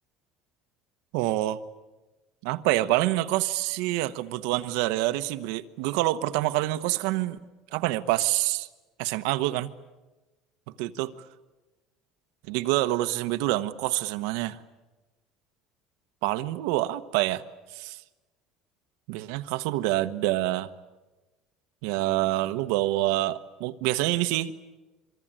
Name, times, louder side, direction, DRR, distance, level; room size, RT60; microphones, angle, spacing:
voice 1, 1.1-1.6 2.4-7.4 7.7-8.7 9.0-9.7 10.8-11.1 12.5-14.6 16.2-17.4 17.7-18.0 19.1-20.7 21.8-24.5, right 16 dB, 75° right, 10 dB, 1.1 m, -26 dB
26.0 x 24.0 x 9.0 m, 1.1 s
cardioid pair, 180°, 0 cm